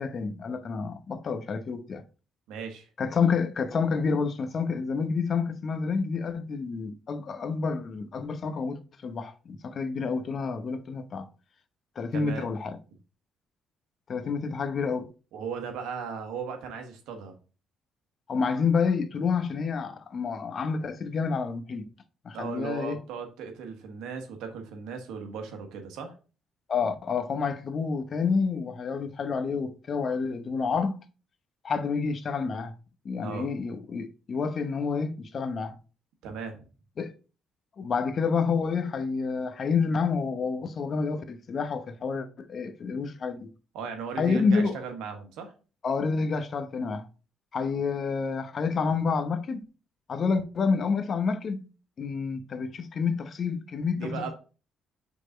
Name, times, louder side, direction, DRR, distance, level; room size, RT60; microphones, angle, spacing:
voice 1, 0.0-2.0 3.0-11.3 12.0-12.8 14.1-15.1 18.3-21.8 22.2-23.0 26.7-31.0 31.6-32.7 33.0-35.7 37.0-37.1 37.8-43.5 44.2-44.8 45.8-47.1 47.5-49.6 50.1-51.7 52.0-54.3, left 5 dB, 50° left, 0.8 m, -29 dB
voice 2, 2.5-2.9 12.1-12.5 15.3-17.3 22.3-26.1 29.5-29.6 33.2-33.5 36.2-36.6 43.7-45.5 53.9-54.3, right 6 dB, 85° right, 1.3 m, -37 dB
5.2 x 4.1 x 4.4 m
cardioid pair, 85°, 0 cm